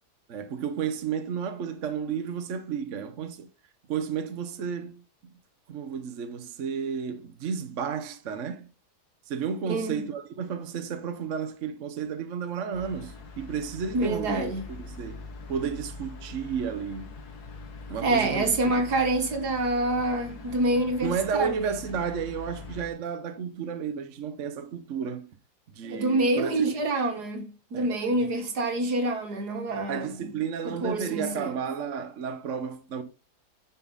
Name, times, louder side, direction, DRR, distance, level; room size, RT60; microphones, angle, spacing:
voice 1, 0.3-3.5 3.9-5.0 5.7-8.7 9.3-17.1 17.9-18.5 21.0-25.3 25.7-26.5 27.7-27.9 29.9-33.0, right 7 dB, 55° right, 1.1 m, -32 dB
voice 2, 9.7-10.0 13.9-14.7 18.0-21.7 25.8-30.3 30.6-31.5, right 2 dB, 70° right, 2.1 m, -27 dB
sound 1, 12.7-22.9, left 3 dB, 70° left, 1.8 m, -43 dB
10.0 x 5.6 x 3.9 m
omnidirectional pair, 1.8 m